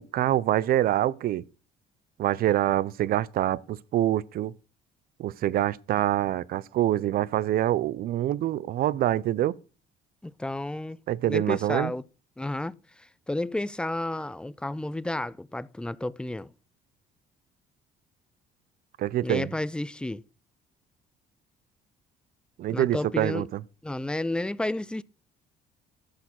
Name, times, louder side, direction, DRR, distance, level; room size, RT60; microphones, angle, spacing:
voice 1, 0.0-1.4 2.2-4.5 5.2-9.5 11.1-11.9 19.0-19.5 22.6-23.6, right 13 dB, 60° right, 0.6 m, -25 dB
voice 2, 10.2-12.0 12.4-16.5 19.2-20.2 22.7-23.5 23.8-25.0, left 1 dB, 5° left, 0.4 m, -32 dB
13.0 x 6.7 x 5.9 m
cardioid pair, 110°, 17 cm